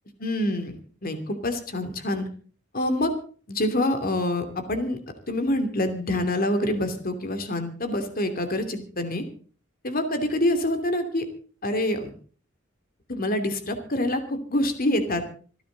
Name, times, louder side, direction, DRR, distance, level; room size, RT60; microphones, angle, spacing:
voice 1, 0.2-0.8 1.0-2.3 2.7-3.1 3.5-5.0 5.3-9.2 9.8-11.2 11.6-12.1 13.1-15.2, left 1 dB, 45° left, 8 dB, 2.8 m, -26 dB
27.0 x 10.0 x 4.0 m, 0.42 s
head